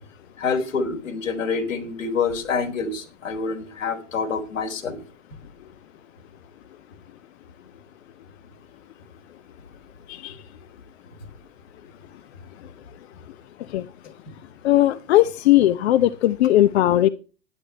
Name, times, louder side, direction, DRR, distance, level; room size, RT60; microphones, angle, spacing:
voice 1, 0.4-5.0, left 5 dB, 80° left, 2 dB, 4.3 m, -27 dB
voice 2, 14.6-17.1, left 14 dB, 55° left, 12 dB, 0.8 m, -18 dB
12.0 x 10.5 x 4.4 m, 0.35 s
hypercardioid pair, 110°, 38 cm